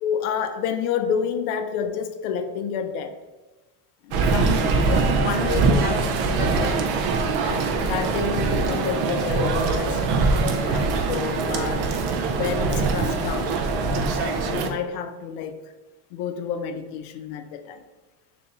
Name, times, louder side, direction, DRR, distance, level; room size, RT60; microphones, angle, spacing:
voice 1, 0.0-3.2 4.0-6.9 7.4-10.1 10.6-12.0 12.4-13.5 14.2-15.7 16.1-17.8, left 7 dB, 85° left, 8 dB, 0.6 m, -29 dB
sound 1, 4.1-14.7, right 4 dB, 60° right, 0.6 m, -23 dB
2.9 x 2.8 x 3.5 m, 1.1 s
supercardioid pair, 85°, 44 cm